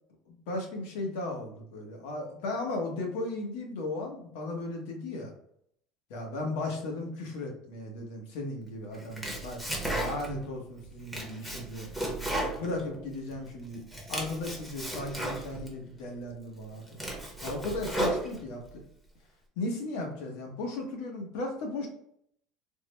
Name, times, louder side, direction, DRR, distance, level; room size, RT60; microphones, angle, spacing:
voice 1, 0.3-5.3 6.1-11.9 12.6-13.8 14.1-17.0 17.4-18.8 19.6-21.9, left 2 dB, 85° left, 1 dB, 0.9 m, -36 dB
Domestic sounds home sounds, 8.9-10.5 10.8-13.4 13.7-15.7 16.3-16.4 16.8-18.7, right 1 dB, 5° left, 0.7 m, -34 dB
3.6 x 2.1 x 3.2 m, 0.69 s
cardioid pair, 155°, 0 cm